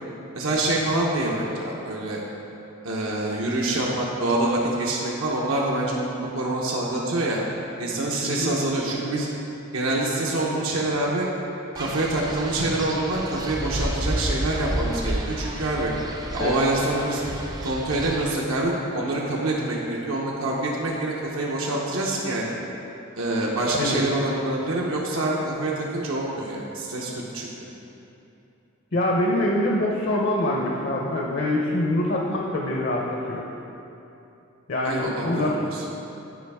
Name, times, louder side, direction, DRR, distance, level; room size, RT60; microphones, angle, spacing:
voice 1, 0.3-2.2 2.8-7.4 7.8-9.3 9.7-11.3 11.7-15.9 16.3-17.2 17.6-22.6 23.2-27.5 34.8-35.9, right 2 dB, 80° right, -3 dB, 0.8 m, -26 dB
voice 2, 8.2-8.5 16.4-16.5 23.7-24.0 28.9-33.4 34.7-35.6, left 1 dB, 50° left, -1 dB, 0.6 m, -24 dB
Wind, 11.8-18.3, right 1 dB, 20° right, 0.4 m, -31 dB
9.3 x 4.8 x 3.5 m, 2.9 s
head